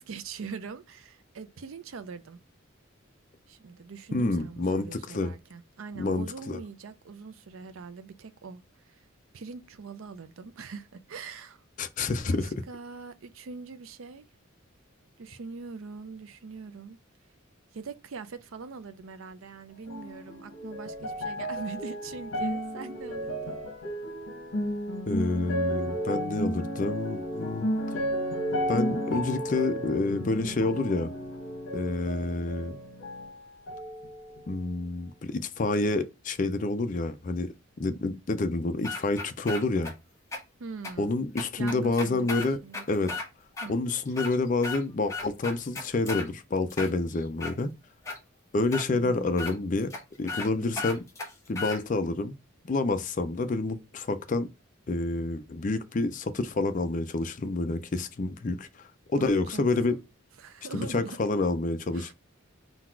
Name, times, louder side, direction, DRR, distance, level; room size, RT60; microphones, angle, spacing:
voice 1, 0.0-2.4 3.5-9.1 9.3-11.6 12.3-14.3 15.2-17.0 17.7-23.6 40.6-41.2 41.6-42.8 43.6-43.8 48.9-49.4 50.6-50.8 59.2-59.6 59.9-60.0 60.4-61.2 61.9-62.1, right 4 dB, 70° right, 0.5 m, -42 dB
voice 2, 4.1-5.3 6.0-6.6 11.8-12.5 25.1-27.7 28.7-31.1 31.7-32.8 34.5-39.9 41.0-42.6 42.9-43.1 43.7-47.7 48.5-49.9 50.2-51.0 51.5-52.4 52.7-54.5 54.9-58.7 59.1-60.0 60.7-62.1, left 3 dB, 35° left, 0.4 m, -28 dB
sound 1, 19.9-33.3 33.7-34.6 35.3-35.4, equal, 65° left, 1.0 m, -33 dB
sound 2, 38.8-39.9 40.3-40.4 40.8-40.9 41.4-43.3 43.6-43.7 44.1-44.8 45.1-46.3 46.7-47.5 48.1-48.2 48.7-48.9 49.4-49.5 49.9-50.0 50.3-50.5 50.8-51.8, left 3 dB, 15° left, 0.9 m, -35 dB
3.9 x 2.3 x 4.3 m
head